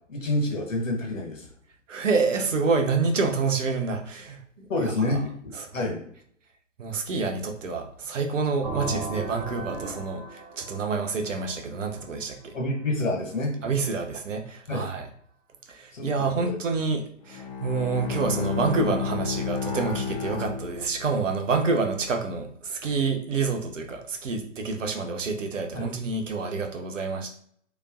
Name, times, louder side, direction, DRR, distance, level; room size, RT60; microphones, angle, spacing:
voice 1, 0.1-1.5 4.7-6.0 12.5-13.5 14.7-14.9 15.9-16.6 25.7-25.9, left 2 dB, 75° left, 0 dB, 1.3 m, -28 dB
voice 2, 1.9-5.1 5.6-5.9 6.8-12.6 13.6-15.1 15.7-27.3, right 4 dB, 70° right, 4 dB, 0.8 m, -28 dB
sound 1, 8.6-12.4, right 2 dB, 35° right, 1.2 m, -36 dB
Bowed string instrument, 17.2-21.3, left 7 dB, 30° left, 0.4 m, -31 dB
3.3 x 2.9 x 2.5 m, 0.64 s
figure-of-eight pair, 125°, 38 cm